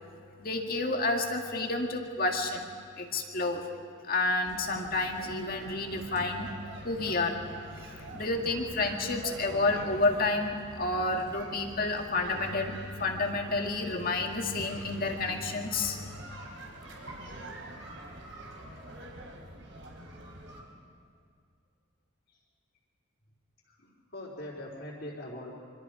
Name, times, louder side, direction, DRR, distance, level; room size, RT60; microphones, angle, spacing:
voice 1, 0.4-2.6 3.0-3.7 4.1-6.5 6.8-7.4 8.1-16.1, left 2 dB, 45° left, 2 dB, 2.0 m, -30 dB
sound 1, 4.4-20.6, right 1 dB, 65° right, 4.0 m, -46 dB
voice 2, 18.4-19.0 23.7-25.6, left 1 dB, 60° left, -10 dB, 4.1 m, -43 dB
26.0 x 25.0 x 5.0 m, 2.3 s
head